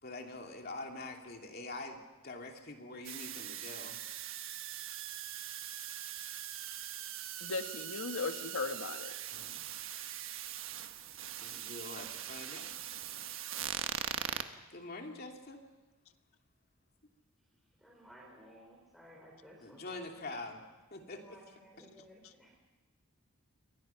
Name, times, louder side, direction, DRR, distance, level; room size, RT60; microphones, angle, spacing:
voice 1, 0.0-2.0 2.2-4.0 9.3-9.6 11.4-12.7 14.7-15.6 19.6-20.6 20.9-21.4, left 2 dB, 45° left, 2 dB, 2.8 m, -45 dB
sound 1, 3.0-14.4, right 10 dB, 70° right, 1.3 m, -41 dB
voice 2, 7.4-9.1 14.5-14.6 22.2-22.3, left 4 dB, 85° left, 7 dB, 1.5 m, -38 dB
voice 3, 17.8-20.0 20.3-20.4 21.1-22.6, equal, ahead, -2 dB, 4.7 m, -57 dB
28.5 x 23.5 x 5.8 m, 1.2 s
head